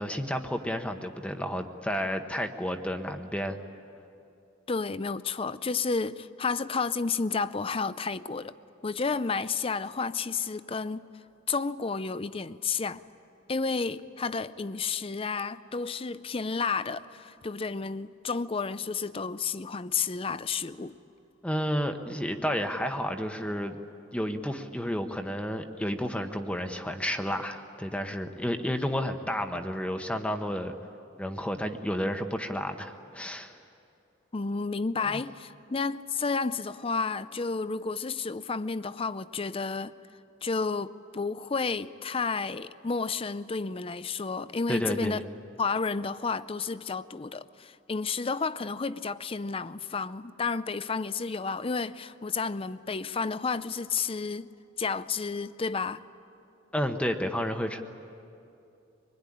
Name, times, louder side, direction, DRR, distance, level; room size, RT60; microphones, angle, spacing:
voice 1, 0.0-3.6 21.4-23.8 24.1-30.7 31.2-33.6 35.1-35.2 44.7-45.2 56.7-57.8, equal, 5° left, 1.0 m, -31 dB
voice 2, 4.7-8.5 8.8-11.0 11.5-13.0 13.5-21.0 34.3-39.9 40.4-45.2 45.6-54.5 54.8-56.0, left 4 dB, 30° left, 0.5 m, -31 dB
24.5 x 21.0 x 9.9 m
head